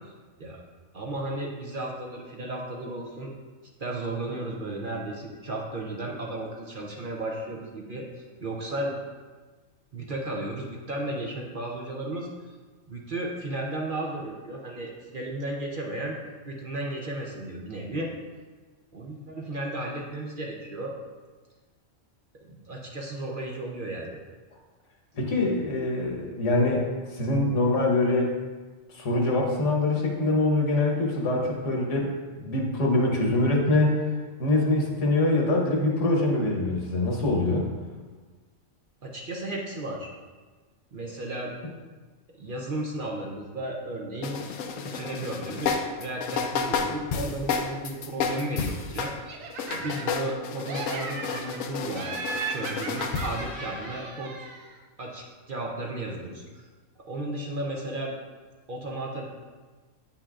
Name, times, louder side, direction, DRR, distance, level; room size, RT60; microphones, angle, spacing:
voice 1, 0.9-3.3 3.8-8.9 9.9-12.3 12.9-16.2 16.5-18.1 18.9-20.9 22.5-24.2 39.0-40.1 40.9-41.5 42.3-44.4 44.8-49.1 49.7-52.1 52.5-54.3 55.0-56.7 57.1-58.1 58.7-59.3, right 1 dB, 50° right, -1 dB, 0.7 m, -34 dB
voice 2, 25.1-26.8 27.1-28.3 28.9-32.1 32.3-34.0 34.4-37.7, left 2 dB, 70° left, 0 dB, 1.3 m, -24 dB
sound 1, 44.2-49.2 49.5-54.1, left 5 dB, 85° left, 1.0 m, -31 dB
Laughter, 49.3-50.4 50.7-51.6 52.0-54.7, right 4 dB, 90° right, 1.1 m, -36 dB
8.5 x 5.7 x 2.4 m, 1.3 s
omnidirectional pair, 1.3 m